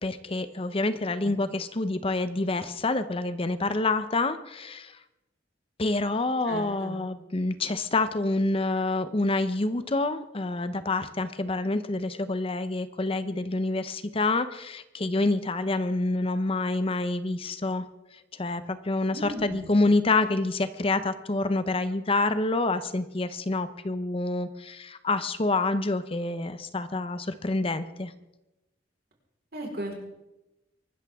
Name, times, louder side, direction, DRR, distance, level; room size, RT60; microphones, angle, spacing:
voice 1, 0.0-5.0 5.8-17.8 18.4-28.1, left 2 dB, 30° left, 12 dB, 0.7 m, -27 dB
voice 2, 6.4-6.9 19.1-19.7 29.5-29.9, right 1 dB, 60° right, 0 dB, 4.4 m, -36 dB
24.0 x 13.0 x 3.6 m, 0.96 s
head